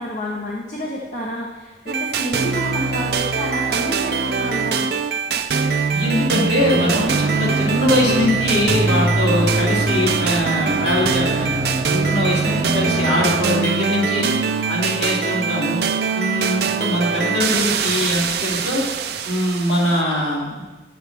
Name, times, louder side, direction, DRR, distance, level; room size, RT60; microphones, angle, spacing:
voice 1, 0.0-4.9 12.5-13.4, equal, 45° left, -3 dB, 1.0 m, -29 dB
sound 1, 1.9-20.0, right 5 dB, 65° right, 0.5 m, -22 dB
voice 2, 5.9-14.3 14.7-15.8 16.1-18.8 19.2-20.6, left 1 dB, 80° left, -6 dB, 2.8 m, -22 dB
sound 2, 6.6-13.7, right 2 dB, 15° right, 0.8 m, -32 dB
10.5 x 7.8 x 3.4 m, 1.2 s
head